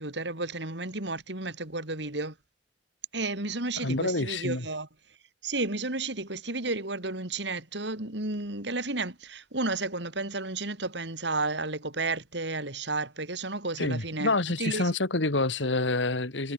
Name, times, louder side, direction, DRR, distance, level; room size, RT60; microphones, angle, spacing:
voice 1, 0.0-2.3 3.1-4.9 5.4-14.9, right 2 dB, 65° right, 4.3 m, -32 dB
voice 2, 3.8-4.7 13.8-16.5, left 2 dB, 75° left, 2.3 m, -27 dB
head